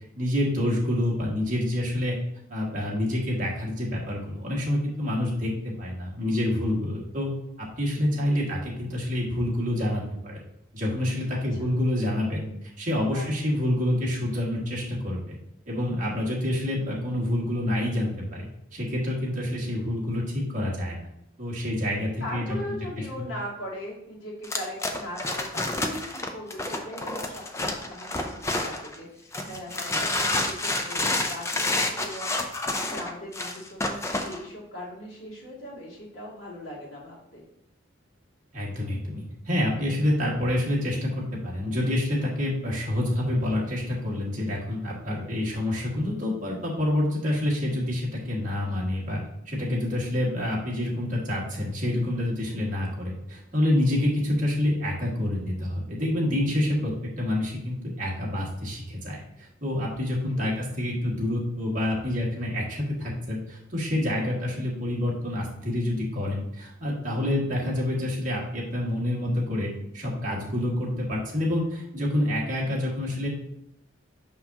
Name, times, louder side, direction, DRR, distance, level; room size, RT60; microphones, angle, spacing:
voice 1, 0.2-2.2 2.5-5.5 5.8-7.3 7.6-10.4 10.7-12.5 12.8-15.4 15.7-21.0 21.4-22.6 23.0-23.2 38.5-49.2 49.5-73.3, left 1 dB, 40° right, -4 dB, 1.8 m, -27 dB
voice 2, 7.9-8.7 11.3-11.7 13.1-13.2 16.0-16.1 22.2-37.4 52.5-52.6 54.0-54.1 60.3-60.6 64.1-64.3 67.2-67.4, left 1 dB, 80° left, -5 dB, 2.4 m, -40 dB
sound 1, 24.4-29.0 29.3-34.4, left 2 dB, 15° left, 0.5 m, -29 dB
5.9 x 5.6 x 2.8 m, 0.78 s
head